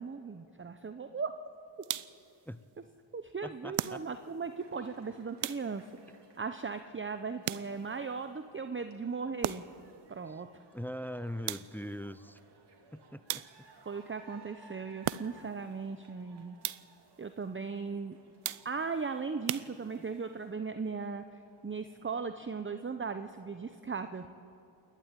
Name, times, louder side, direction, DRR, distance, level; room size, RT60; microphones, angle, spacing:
voice 1, 0.0-1.3 3.1-5.8 6.4-9.6 10.1-10.5 13.9-16.6 17.2-18.2 18.6-24.3, right 5 dB, 25° right, 8 dB, 0.8 m, -38 dB
sound 1, 1.8-2.3 3.7-4.4 5.4-6.0 7.4-8.0 9.4-9.9 11.5-12.0 13.3-13.9 15.0-15.6 16.6-17.1 18.4-19.0 19.5-20.2, right 12 dB, 85° right, 0.7 m, -38 dB
voice 2, 3.4-4.0 10.3-10.4 10.7-12.4 12.9-13.4, equal, 5° left, 14 dB, 0.5 m, -41 dB
sound 2, 4.6-22.1, right 4 dB, 55° right, 2.9 m, -61 dB
28.0 x 11.5 x 9.1 m, 2.7 s
cardioid pair, 75°, 49 cm